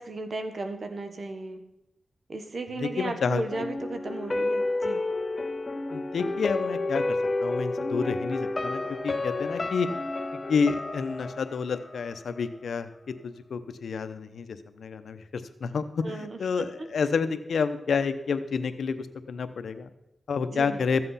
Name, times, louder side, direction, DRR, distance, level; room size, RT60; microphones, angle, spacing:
voice 1, 0.0-1.6 2.3-5.0 16.0-16.9 20.5-20.9, right 2 dB, 60° right, 7 dB, 1.4 m, -35 dB
voice 2, 2.8-3.4 5.9-7.0 7.4-9.9 10.5-19.9 20.3-21.0, left 5 dB, 85° left, 11 dB, 0.8 m, -29 dB
sound 1, 3.5-12.5 12.8-12.9, left 2 dB, 40° left, 1.1 m, -31 dB
14.0 x 7.8 x 5.7 m, 0.91 s
cardioid pair, 60°, 0 cm